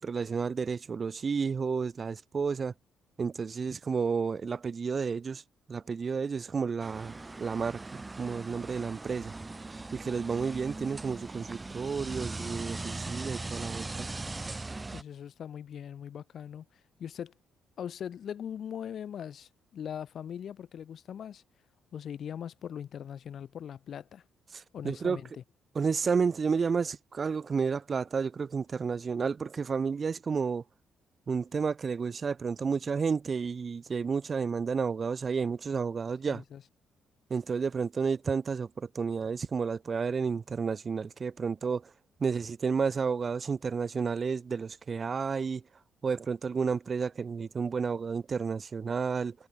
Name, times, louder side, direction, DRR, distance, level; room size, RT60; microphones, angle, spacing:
voice 1, 0.0-2.7 3.2-5.4 5.7-9.3 9.9-14.1 24.5-25.2 25.8-30.6 31.3-36.4 37.3-41.8 42.2-45.6 46.0-49.4, right 5 dB, 40° right, 5.4 m, -31 dB
sound 1, 6.8-15.0, right 3 dB, 20° right, 2.2 m, -39 dB
voice 2, 14.9-16.7 17.0-17.3 17.8-21.4 21.9-24.2 24.7-25.4 36.3-36.6, left 9 dB, 60° left, 7.0 m, -40 dB
cardioid pair, 90°, 0 cm